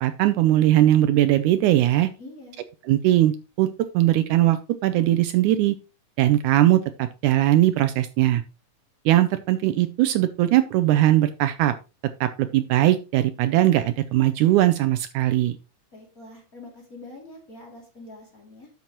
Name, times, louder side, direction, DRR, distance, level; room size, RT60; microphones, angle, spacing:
voice 1, 0.0-2.1 2.9-3.7 3.9-5.8 6.2-8.4 9.1-11.7 12.2-15.6, right 14 dB, 80° right, 11 dB, 1.9 m, -20 dB
voice 2, 2.2-2.6 15.9-18.7, left 2 dB, 30° left, 0 dB, 2.7 m, -44 dB
11.5 x 7.3 x 3.0 m, 0.29 s
omnidirectional pair, 3.8 m